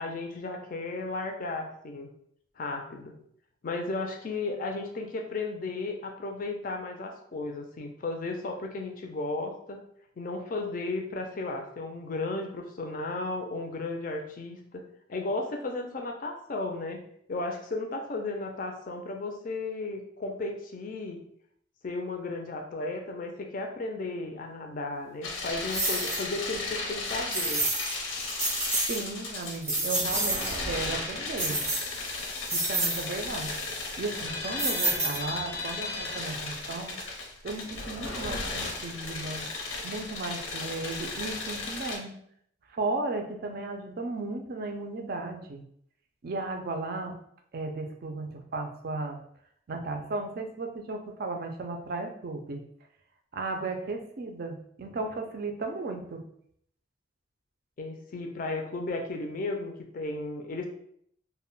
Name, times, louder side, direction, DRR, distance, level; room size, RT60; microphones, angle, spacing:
voice 1, 0.0-2.1 2.6-3.2 3.6-9.8 10.2-17.0 17.3-21.2 21.8-27.6 57.8-60.7, left 2 dB, 45° left, 3 dB, 0.4 m, -34 dB
sound 1, 25.2-42.0, left 3 dB, 85° left, 0.7 m, -35 dB
sound 2, 25.7-26.2 27.3-27.9 28.3-29.0 29.4-30.6 31.4-32.1 32.5-33.0 34.6-35.4, right 2 dB, 15° right, 0.6 m, -29 dB
voice 2, 28.9-31.6 32.5-33.5 34.0-36.9 37.4-39.5 39.8-42.1 42.7-45.6 46.2-47.2 47.5-49.2 49.7-52.6 53.3-56.2, right 3 dB, 50° right, 4 dB, 0.4 m, -35 dB
2.2 x 2.1 x 3.7 m, 0.68 s
head